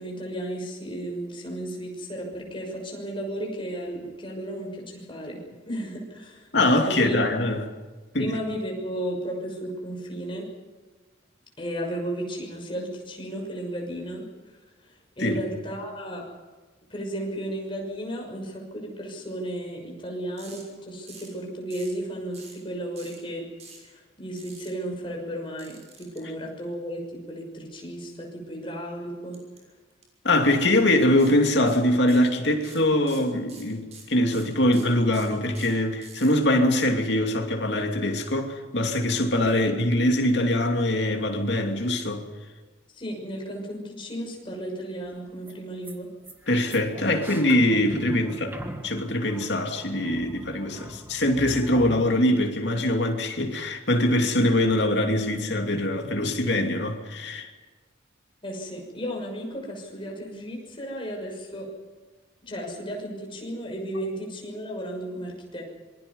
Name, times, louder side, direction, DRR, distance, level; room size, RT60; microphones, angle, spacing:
voice 1, 0.0-6.5 6.9-7.2 8.2-10.5 11.6-14.3 14.8-16.2 16.9-23.5 23.8-29.4 42.9-46.1 58.4-61.7 62.4-65.6, right 1 dB, 25° left, 6.2 m, -34 dB
voice 2, 6.5-7.6 8.1-8.4 15.2-15.4 30.2-42.2 46.5-48.6 48.8-57.5, left 1 dB, 60° left, 2.7 m, -23 dB
sound 1, 20.4-20.6 21.1-21.4 21.7-22.0 22.3-22.6 22.9-23.2 23.6-23.8 24.4-24.7 25.6-26.2 29.3-29.6 29.9-30.0 30.5-30.8 31.2-31.3 31.7-32.3 32.6-36.3, right 4 dB, 35° right, 6.1 m, -47 dB
sound 2, 45.1-45.2 45.4-45.5 45.8-46.0 46.2-52.1, right 1 dB, 10° right, 1.7 m, -40 dB
26.5 x 22.0 x 5.5 m
head